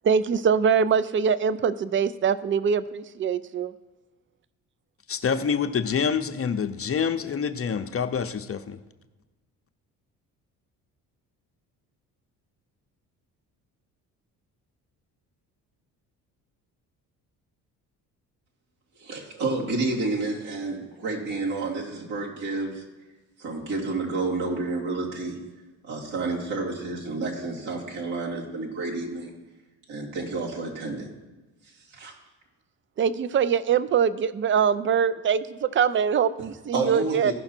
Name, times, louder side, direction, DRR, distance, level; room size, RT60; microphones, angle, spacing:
voice 1, 0.0-3.7 33.0-37.3, right 7 dB, 30° right, 0.5 m, -23 dB
voice 2, 5.1-8.8, left 6 dB, 35° left, 0.7 m, -26 dB
voice 3, 19.0-22.8 23.4-25.4 25.8-29.3 29.9-31.1 31.9-32.1 36.7-37.3, right 3 dB, 75° right, 2.8 m, -30 dB
15.5 x 5.7 x 4.4 m
hypercardioid pair, 60°, 42 cm